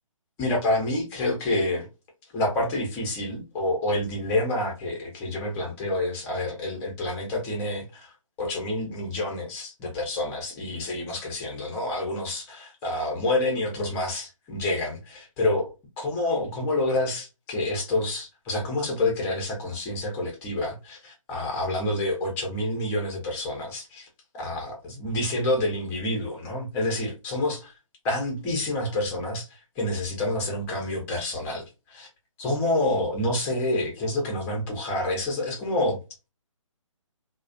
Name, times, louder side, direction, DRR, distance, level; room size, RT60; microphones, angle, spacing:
voice 1, 0.4-1.9 2.3-8.1 8.4-15.7 16.0-24.1 24.3-27.7 28.0-32.1 32.4-36.0, left 1 dB, 15° left, 0.6 m, -28 dB
2.3 x 2.1 x 2.5 m
figure-of-eight pair, 150°, 17 cm